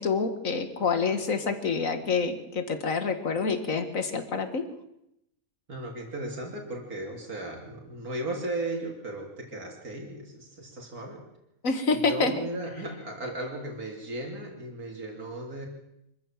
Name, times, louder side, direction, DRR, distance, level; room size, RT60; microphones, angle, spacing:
voice 1, 0.0-4.7 11.6-12.3, left 4 dB, 65° left, 8 dB, 2.2 m, -27 dB
voice 2, 5.7-11.2 12.1-15.7, right 2 dB, 85° right, 1 dB, 3.5 m, -36 dB
25.0 x 14.5 x 7.4 m, 0.82 s
omnidirectional pair, 1.5 m